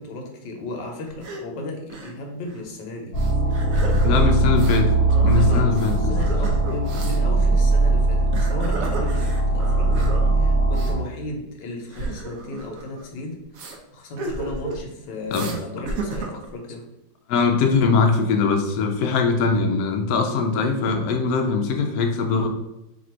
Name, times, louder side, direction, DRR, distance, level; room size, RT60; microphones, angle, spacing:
voice 1, 0.0-3.1 3.5-4.6 5.3-13.3 13.6-16.8, left 2 dB, 65° left, 2 dB, 1.3 m, -35 dB
sound 1, 1.1-1.4 1.9-2.1 2.4-2.6 3.2-4.8 5.1-7.2 8.1-10.3 10.7-10.9 11.9-13.0 13.5-13.8 14.2-14.8 15.3-15.6 15.9-16.5, right 2 dB, 80° right, 0.7 m, -31 dB
sound 2, 3.1-10.9, right 2 dB, 40° left, 1.1 m, -20 dB
voice 2, 4.0-4.9 5.2-6.1 15.3-15.5 17.3-22.5, left 4 dB, 85° left, 3 dB, 0.8 m, -21 dB
3.4 x 2.5 x 4.3 m, 0.93 s
omnidirectional pair, 2.3 m